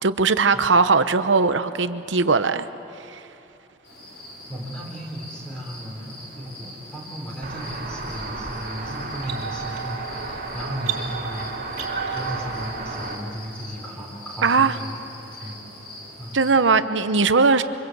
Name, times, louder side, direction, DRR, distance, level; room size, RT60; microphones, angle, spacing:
voice 1, 0.0-2.7 3.1-3.2 14.4-14.7 16.3-17.6, right 4 dB, 85° right, 11 dB, 0.9 m, -19 dB
sound 1, 3.8-16.6, left 1 dB, 60° left, 7.5 m, -42 dB
voice 2, 4.5-14.9 15.4-15.6 16.2-16.4, equal, 5° left, -2 dB, 4.2 m, -35 dB
sound 2, 7.4-13.1, right 4 dB, 50° right, 3.2 m, -31 dB
25.0 x 25.0 x 8.1 m, 2.8 s
head